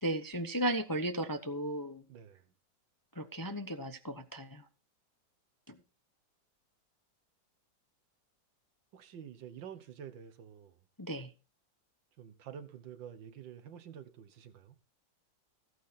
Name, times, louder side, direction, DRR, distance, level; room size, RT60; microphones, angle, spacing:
voice 1, 0.0-2.0 3.1-4.7 5.7-5.8 11.0-11.3, right 1 dB, 20° left, 0.5 m, -35 dB
voice 2, 2.1-2.4 8.9-10.8 12.2-14.8, right 8 dB, 85° right, 1.9 m, -48 dB
14.5 x 9.1 x 4.3 m
omnidirectional pair, 2.0 m